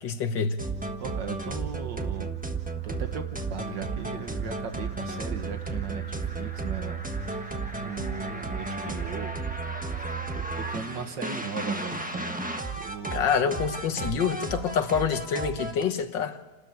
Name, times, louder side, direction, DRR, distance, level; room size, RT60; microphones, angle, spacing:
voice 1, 0.0-0.6 13.1-16.4, left 7 dB, 75° left, 1.9 m, -26 dB
sound 1, 0.6-15.8, right 3 dB, 5° right, 1.1 m, -33 dB
voice 2, 1.0-2.3 2.8-7.0 7.3-9.3 10.0-12.4 12.8-13.2 13.4-13.5, right 6 dB, 75° right, 2.3 m, -38 dB
29.5 x 13.0 x 9.2 m
omnidirectional pair, 2.0 m